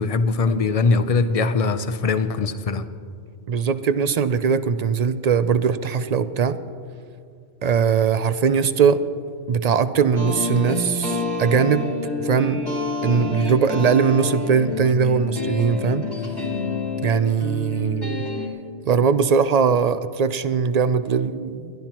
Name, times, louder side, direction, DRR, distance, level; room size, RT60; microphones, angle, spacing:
voice 1, 0.0-2.9, left 4 dB, 40° left, 11 dB, 0.6 m, -21 dB
voice 2, 3.5-6.6 7.6-9.0 9.5-12.6 13.0-16.1 17.0-18.2 18.9-21.7, right 6 dB, 55° right, 12 dB, 0.4 m, -20 dB
sound 1, 10.1-18.5, left 3 dB, 20° left, 1.9 m, -28 dB
29.0 x 12.0 x 3.0 m, 2.3 s
omnidirectional pair, 1.1 m